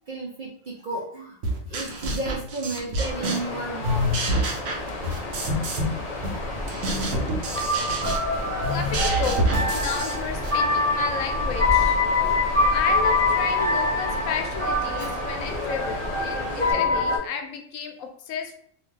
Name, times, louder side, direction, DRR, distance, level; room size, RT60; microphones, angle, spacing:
voice 1, 0.1-1.4 1.7-4.1 12.2-12.7 15.0-15.2, right 2 dB, 55° right, -3 dB, 0.6 m, -33 dB
sound 1, 1.4-3.6 3.8-6.0 6.2-10.6, right 1 dB, 70° right, 1.0 m, -27 dB
Water, 3.0-16.7, left 2 dB, 50° left, 0.5 m, -34 dB
sound 2, 4.7-17.2, left 2 dB, ahead, 0.8 m, -25 dB
voice 2, 8.7-9.4 9.7-12.0 12.7-18.5, left 6 dB, 75° left, 5 dB, 0.9 m, -32 dB
2.7 x 2.4 x 3.1 m, 0.62 s
omnidirectional pair, 1.4 m